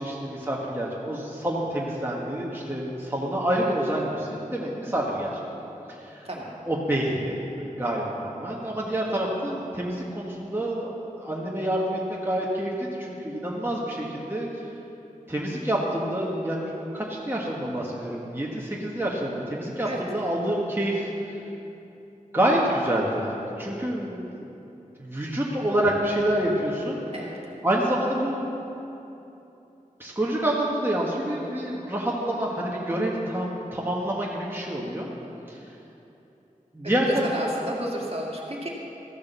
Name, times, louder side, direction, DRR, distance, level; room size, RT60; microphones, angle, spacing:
voice 1, 0.0-5.3 5.9-6.3 6.7-14.5 15.3-21.1 22.3-23.3 23.6-24.5 25.0-27.0 27.6-28.5 30.0-35.1 35.5-35.6 36.7-37.5, right 1 dB, 15° right, -4 dB, 1.5 m, -27 dB
voice 2, 37.1-38.7, right 1 dB, 45° right, -3 dB, 2.0 m, -32 dB
14.0 x 6.8 x 6.8 m, 3.0 s
wide cardioid pair, 50°, 14 cm